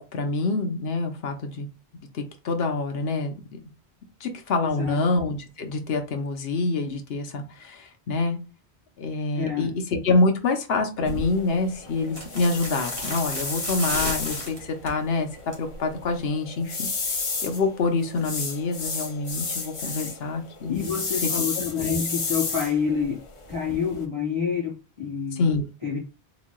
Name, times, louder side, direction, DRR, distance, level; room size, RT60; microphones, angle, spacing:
voice 1, 0.1-1.7 2.1-3.6 4.2-8.4 9.0-15.3 15.6-16.9 17.4-20.9 21.2-21.3 21.8-21.9 25.3-25.6, left 3 dB, 70° left, 5 dB, 1.0 m, -26 dB
voice 2, 9.3-9.7 20.7-23.2 23.5-24.7 25.0-25.4 25.8-26.0, left 6 dB, 30° right, -7 dB, 1.8 m, -27 dB
sound 1, 11.0-24.0, left 4 dB, 35° left, 0.5 m, -33 dB
sound 2, 11.0-11.3 12.1-15.0 15.4-15.7 16.0-16.1, right 2 dB, 60° right, 1.6 m, -34 dB
3.8 x 3.1 x 2.2 m, 0.31 s
omnidirectional pair, 1.1 m